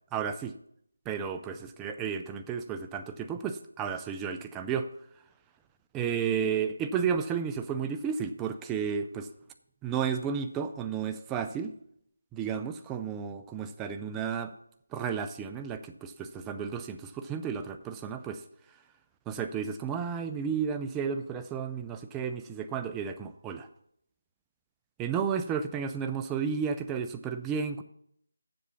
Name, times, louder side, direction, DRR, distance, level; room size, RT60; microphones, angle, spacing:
voice 1, 0.1-0.5 1.1-4.9 5.9-9.3 9.8-11.7 12.3-14.5 14.9-18.4 19.3-23.7 25.0-27.8, right 7 dB, 10° right, 7 dB, 0.4 m, -32 dB
7.6 x 6.6 x 7.0 m, 0.71 s
figure-of-eight pair, 165°, 0 cm